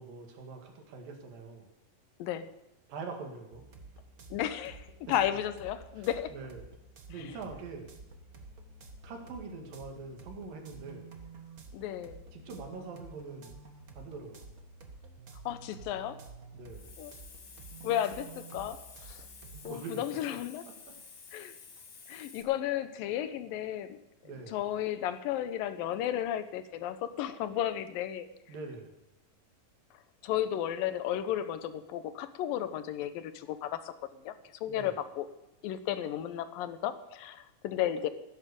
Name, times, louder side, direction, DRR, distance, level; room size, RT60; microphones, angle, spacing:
voice 1, 0.0-1.7 2.9-3.6 5.1-5.3 6.0-6.7 7.1-8.0 9.0-11.1 12.3-13.7 14.0-14.5 16.5-17.0 19.5-20.2 20.7-20.9 24.2-24.6 28.5-29.0 34.7-34.9, right 4 dB, 80° right, 3 dB, 3.8 m, -44 dB
sound 1, 3.5-19.8, right 3 dB, 60° right, 0.9 m, -50 dB
voice 2, 4.3-6.3 7.2-7.3 11.7-12.2 15.5-16.2 17.0-17.1 17.8-19.2 19.6-20.6 21.3-21.6 22.1-24.0 24.5-28.3 30.2-33.9 34.2-34.4 34.6-35.3 35.6-38.1, left 11 dB, 85° left, 12 dB, 2.6 m, -33 dB
Hiss, 16.7-22.4, left 5 dB, 45° left, 1.6 m, -51 dB
16.0 x 9.8 x 7.0 m, 0.89 s
omnidirectional pair, 3.9 m